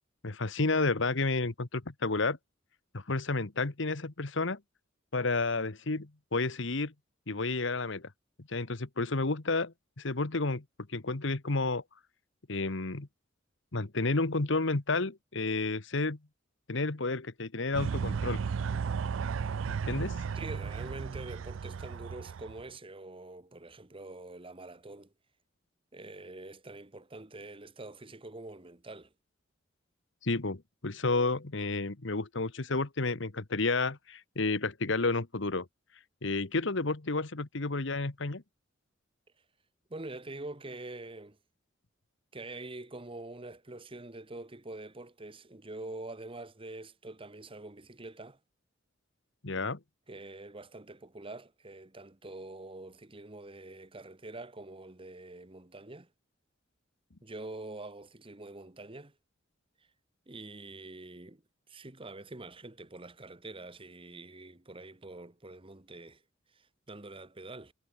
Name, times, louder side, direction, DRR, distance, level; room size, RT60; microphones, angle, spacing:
voice 1, 0.2-2.4 2.9-4.6 5.1-6.9 7.3-8.1 8.5-10.6 10.9-11.8 12.5-13.1 13.7-16.2 16.7-18.4 19.7-20.2 30.2-35.7 36.2-38.4 49.4-49.8, left 3 dB, 70° left, 1.4 m, -31 dB
sound 1, 17.7-22.6, right 6 dB, 75° right, 0.4 m, -34 dB
voice 2, 20.3-25.1 25.9-29.1 39.9-41.4 42.3-48.4 50.1-56.1 57.2-59.1 60.3-61.4 61.7-66.2 66.5-67.7, right 2 dB, 30° right, 1.6 m, -45 dB
head